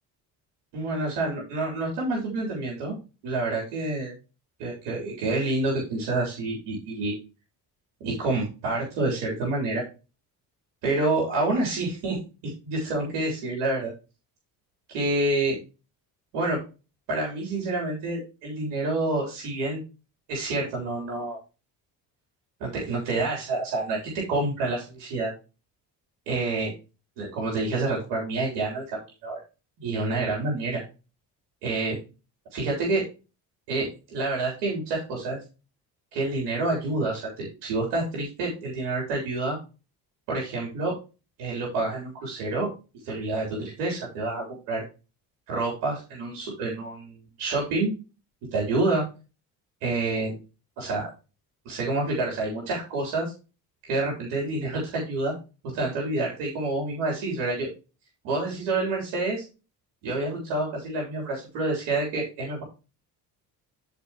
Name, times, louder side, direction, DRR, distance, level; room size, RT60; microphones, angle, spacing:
voice 1, 0.7-3.0 3.2-4.1 4.6-7.2 8.0-9.8 10.8-12.2 12.4-13.9 14.9-15.6 16.3-16.6 17.1-19.8 20.3-21.4 22.6-25.3 26.3-26.7 27.2-29.4 29.8-30.8 31.6-32.0 32.5-33.0 33.7-35.4 36.1-39.6 40.3-40.9 41.4-42.7 43.0-44.8 45.5-47.9 48.5-49.0 49.8-50.4 50.8-51.1 51.7-53.3 53.8-55.3 55.7-57.7 58.2-59.4 60.0-62.6, right 2 dB, 85° right, -3 dB, 3.7 m, -28 dB
13.5 x 4.9 x 3.0 m, 0.30 s
supercardioid pair, 60°, 45 cm